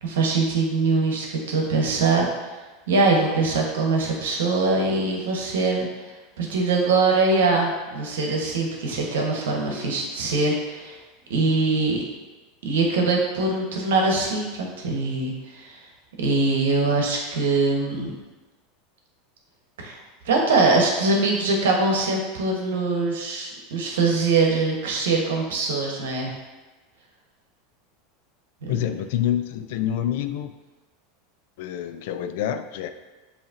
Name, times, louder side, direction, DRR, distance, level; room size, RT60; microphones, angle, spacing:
voice 1, 0.0-2.3 2.9-5.9 6.4-11.0 11.3-12.0 12.6-15.9 16.2-18.1 19.8-20.0 20.2-26.3 28.6-28.7, right 3 dB, 85° right, 0 dB, 1.0 m, -22 dB
voice 2, 28.7-30.5 31.6-32.9, left 10 dB, 70° left, 9 dB, 0.3 m, -27 dB
7.1 x 2.8 x 2.5 m, 1.2 s
supercardioid pair, 115°, 0 cm